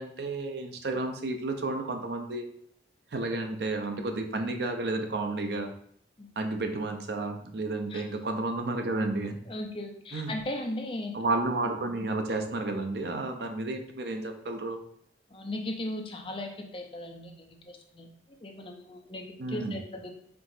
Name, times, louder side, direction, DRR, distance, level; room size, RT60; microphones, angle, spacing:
voice 1, 0.0-2.5 3.1-5.7 6.4-9.4 10.1-10.3 11.1-14.8 19.4-19.8, right 2 dB, 65° right, 5 dB, 0.5 m, -31 dB
voice 2, 9.5-11.1 15.3-20.1, left 1 dB, 30° left, 2 dB, 0.5 m, -37 dB
4.5 x 3.8 x 2.6 m, 0.63 s
head